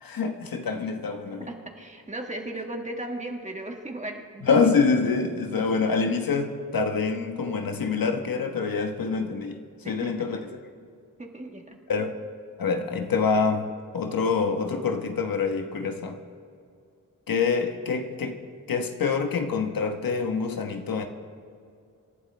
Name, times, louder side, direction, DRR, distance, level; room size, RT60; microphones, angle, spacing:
voice 1, 0.0-1.4 4.4-9.6 9.9-10.4 11.9-12.1 12.6-13.7 13.9-16.2 17.3-18.4 18.7-21.1, left 5 dB, 80° left, 5 dB, 1.3 m, -26 dB
voice 2, 1.5-4.7 5.5-5.6 9.8-10.3 11.2-11.8, right 1 dB, 20° right, 3 dB, 1.5 m, -36 dB
27.0 x 11.5 x 3.3 m, 2.4 s
wide cardioid pair, 105°, 34 cm